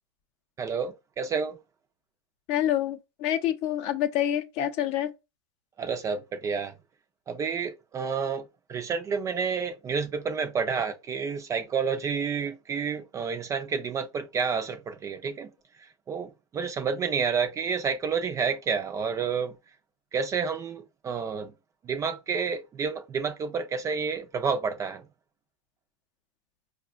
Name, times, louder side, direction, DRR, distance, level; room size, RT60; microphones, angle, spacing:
voice 1, 0.6-1.6 5.8-6.7 7.3-15.5 15.8-19.5 20.1-21.5 21.8-25.0, right 6 dB, 20° right, 0.4 m, -30 dB
voice 2, 2.5-5.1, left 11 dB, 45° left, 0.5 m, -27 dB
4.8 x 2.2 x 2.3 m
hypercardioid pair, 125°, 16 cm